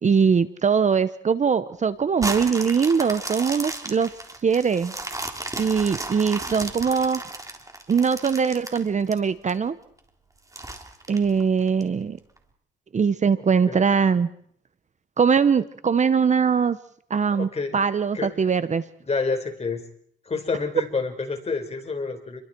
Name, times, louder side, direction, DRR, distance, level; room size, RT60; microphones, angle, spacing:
voice 1, 0.0-4.1 4.4-4.9 5.6-7.2 7.9-9.8 11.1-12.2 12.9-14.3 15.2-16.8 17.1-18.8, right 6 dB, 35° right, 14 dB, 1.1 m, -21 dB
sound 1, 2.2-9.5 10.0-10.1 10.5-11.8 12.4-12.5, right 2 dB, 15° right, 3.7 m, -34 dB
voice 2, 13.3-13.8 17.3-17.8 18.1-18.3 19.0-19.8 20.2-22.4, left 4 dB, 30° left, 5 dB, 5.2 m, -29 dB
29.5 x 23.5 x 4.7 m, 0.63 s
cardioid pair, 90°, 20 cm